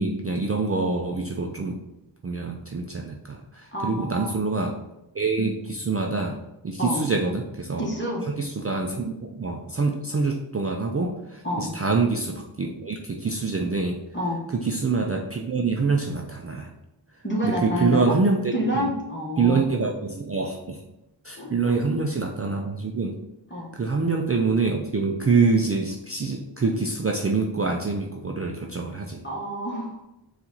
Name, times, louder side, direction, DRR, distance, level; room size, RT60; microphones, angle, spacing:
voice 1, 0.0-1.8 2.2-4.8 5.1-6.4 6.6-7.9 8.4-14.0 14.5-16.7 17.4-18.9 19.4-20.8 21.2-23.2 23.7-29.2, right 4 dB, 30° right, 1 dB, 0.4 m, -25 dB
voice 2, 3.7-4.4 6.8-7.1 7.8-8.3 11.4-11.7 14.1-14.5 17.2-18.2 18.5-19.7 21.4-21.8 23.5-23.7 29.2-30.0, equal, 25° left, -2 dB, 1.2 m, -28 dB
4.3 x 2.5 x 3.9 m, 0.91 s
wide cardioid pair, 55°, 46 cm